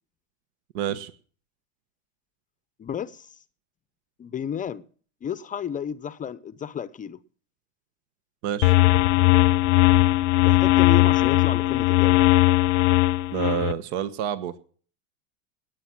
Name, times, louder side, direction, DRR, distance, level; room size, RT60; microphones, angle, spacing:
voice 1, 0.7-1.1 8.4-8.7 13.3-14.6, right 9 dB, 65° right, 1.3 m, -28 dB
voice 2, 2.8-3.3 4.2-4.8 5.2-7.2 10.4-12.2, left 8 dB, 20° left, 0.7 m, -32 dB
sound 1, 8.6-13.7, left 18 dB, 70° left, 0.6 m, -19 dB
19.0 x 8.1 x 5.9 m
supercardioid pair, 115°, 36 cm